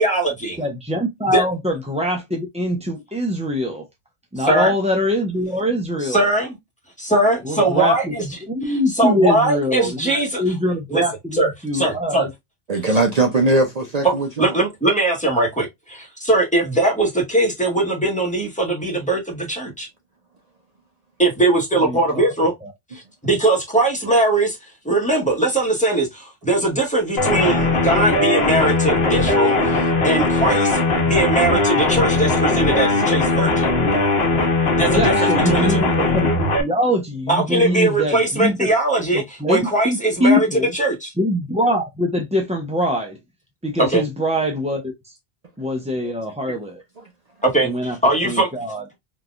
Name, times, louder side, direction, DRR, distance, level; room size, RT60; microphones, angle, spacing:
voice 1, 0.0-0.6 1.3-1.4 4.4-4.7 6.0-6.6 7.0-8.3 8.6-10.4 10.9-11.0 11.3-12.3 14.0-19.9 21.2-22.5 22.9-24.6 24.8-33.7 34.8-35.8 37.3-41.1 43.9-44.0 47.4-48.5, right 2 dB, 5° left, 1.4 m, -20 dB
voice 2, 0.6-3.8 4.3-6.2 7.4-8.1 8.5-11.4 11.6-12.3 21.9-22.3 34.9-38.6 39.1-40.7 41.2-43.2 43.6-44.8 45.6-46.8 47.6-48.0 48.2-48.8, equal, 10° right, 0.4 m, -23 dB
voice 3, 12.7-14.5 46.0-46.1 46.5-46.6 47.0-47.1, right 2 dB, 45° right, 0.7 m, -20 dB
sound 1, 27.2-36.6, left 3 dB, 75° left, 1.2 m, -19 dB
3.7 x 2.8 x 2.4 m
omnidirectional pair, 1.0 m